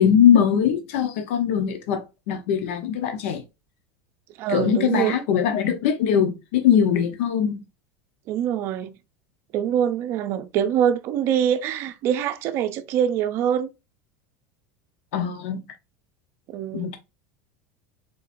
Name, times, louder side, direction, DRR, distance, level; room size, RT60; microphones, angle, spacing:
voice 1, 0.0-3.4 4.5-7.6 15.1-15.6 16.7-17.0, left 8 dB, 75° left, 0.8 m, -21 dB
voice 2, 4.4-5.2 8.3-8.9 9.5-13.7 16.5-16.9, right 9 dB, 40° right, 0.5 m, -24 dB
4.2 x 3.8 x 2.5 m
cardioid pair, 170°, 7 cm